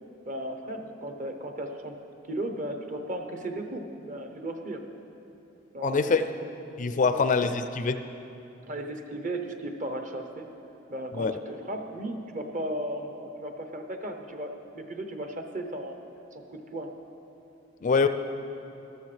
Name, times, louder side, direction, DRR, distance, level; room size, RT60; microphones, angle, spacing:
voice 1, 0.2-2.0 2.3-4.8 5.7-6.2 7.0-7.2 8.7-10.5 10.9-16.0 16.3-16.9, right 1 dB, 40° right, 5 dB, 0.8 m, -35 dB
voice 2, 5.8-6.3 6.8-8.0 11.1-11.3 17.8-18.1, left 4 dB, 40° left, 10 dB, 0.4 m, -24 dB
13.5 x 13.0 x 3.3 m, 2.9 s
head